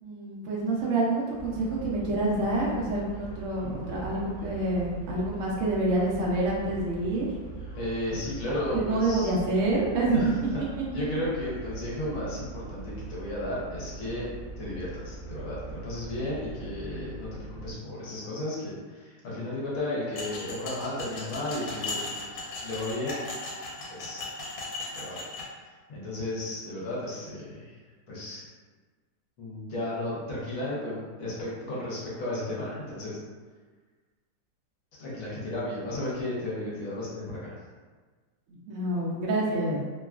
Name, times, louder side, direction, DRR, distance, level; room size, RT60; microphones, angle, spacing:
voice 1, 0.0-7.3 8.5-10.2 38.5-39.8, right 2 dB, 75° right, -4 dB, 0.7 m, -27 dB
sound 1, 1.4-17.7, right 3 dB, 35° right, 0.8 m, -41 dB
voice 2, 7.7-9.3 10.1-10.6 10.9-14.3 14.6-22.1 22.6-23.1 23.9-24.2 24.9-25.2 25.7-27.7 28.1-28.4 29.4-33.2 35.0-37.5, left 1 dB, 60° left, -6 dB, 1.0 m, -34 dB
sound 2, 20.1-25.4, left 2 dB, 80° left, 1.2 m, -37 dB
2.9 x 2.3 x 2.3 m, 1.4 s
omnidirectional pair, 1.9 m